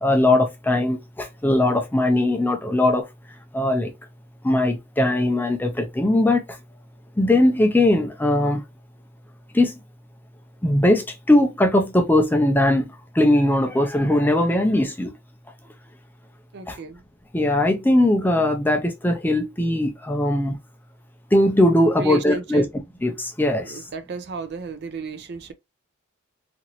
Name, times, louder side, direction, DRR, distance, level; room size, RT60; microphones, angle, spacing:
voice 1, 0.0-3.1 3.5-3.9 4.4-6.6 7.2-8.6 9.5-9.7 10.6-15.1 16.7-16.8 17.3-20.6 21.3-22.6 23.0-23.8, left 1 dB, 10° left, 0.4 m, -20 dB
voice 2, 16.5-17.0 22.0-22.7 23.6-25.5, right 4 dB, 50° right, 0.4 m, -33 dB
2.9 x 2.6 x 2.8 m
head